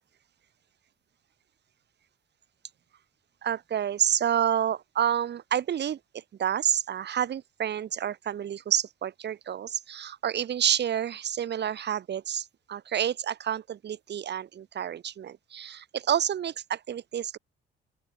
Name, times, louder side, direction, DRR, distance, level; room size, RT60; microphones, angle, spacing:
voice 1, 3.4-17.4, right 9 dB, 60° right, 2.2 m, -29 dB
open air
cardioid pair, 90°, 20 cm